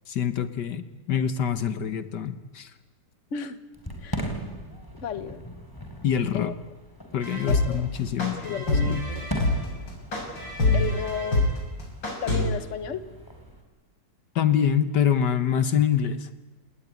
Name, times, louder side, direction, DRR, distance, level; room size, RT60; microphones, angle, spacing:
voice 1, 0.1-2.7 6.0-6.6 7.1-9.0 14.3-16.3, left 8 dB, 70° left, 12 dB, 1.7 m, -25 dB
Fireworks, 3.7-13.6, equal, 10° left, 3.9 m, -39 dB
voice 2, 5.0-5.4 6.3-6.5 7.5-7.9 8.4-8.8 9.1-9.3 10.7-11.5 12.2-13.0, left 7 dB, 45° left, 11 dB, 1.6 m, -33 dB
sound 1, 7.2-12.4, left 2 dB, 85° left, 6.9 m, -25 dB
29.5 x 19.0 x 9.8 m, 1.2 s
omnidirectional pair, 1.9 m